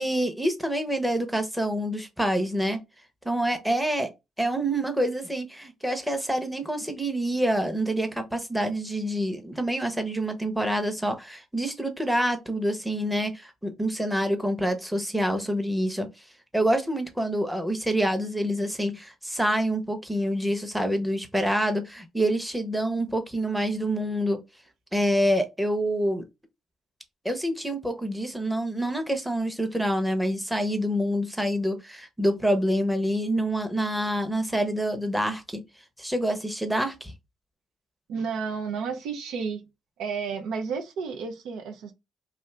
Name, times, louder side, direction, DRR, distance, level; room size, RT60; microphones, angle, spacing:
voice 1, 0.0-2.8 3.2-4.1 4.4-16.1 16.5-24.4 24.9-26.2 27.2-35.6 36.0-37.1, equal, 5° right, 0.7 m, -27 dB
voice 2, 38.1-39.6 40.0-41.9, right 5 dB, 85° right, 0.5 m, -31 dB
2.6 x 2.4 x 3.2 m
cardioid pair, 90°, 0 cm